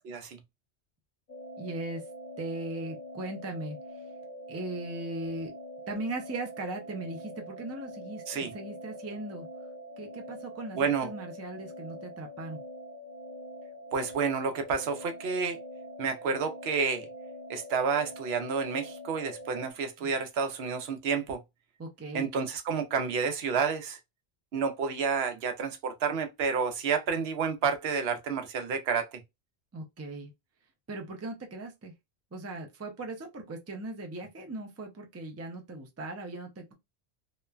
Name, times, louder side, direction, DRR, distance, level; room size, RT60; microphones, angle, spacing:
voice 1, 0.1-0.4 8.3-8.5 10.7-11.1 13.9-15.6 16.0-17.1 17.5-21.4 22.1-24.0 24.5-29.2, right 5 dB, 75° right, 0.8 m, -30 dB
sound 1, 1.3-19.7, equal, 50° left, 1.0 m, -44 dB
voice 2, 1.6-2.0 2.4-3.8 4.5-5.5 5.9-9.5 10.0-12.6 21.8-22.3 29.7-30.3 30.9-31.9 32.3-36.7, right 2 dB, 20° right, 0.4 m, -38 dB
3.0 x 2.1 x 2.3 m
omnidirectional pair, 1.1 m